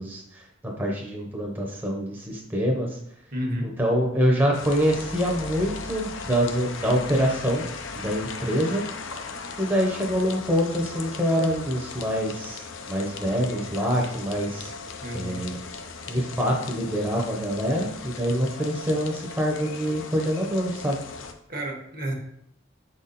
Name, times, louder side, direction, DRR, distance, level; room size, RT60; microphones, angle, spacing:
voice 1, 0.0-3.0 3.6-7.6 8.0-8.8 9.6-14.7 15.1-15.6 16.1-21.0, equal, 10° right, -1 dB, 0.8 m, -25 dB
voice 2, 3.3-3.7 15.0-15.4 21.5-22.1, equal, 45° right, 2 dB, 1.1 m, -30 dB
sound 1, 4.5-21.3, left 4 dB, 75° left, 0.6 m, -38 dB
5.8 x 4.2 x 4.0 m, 0.72 s
head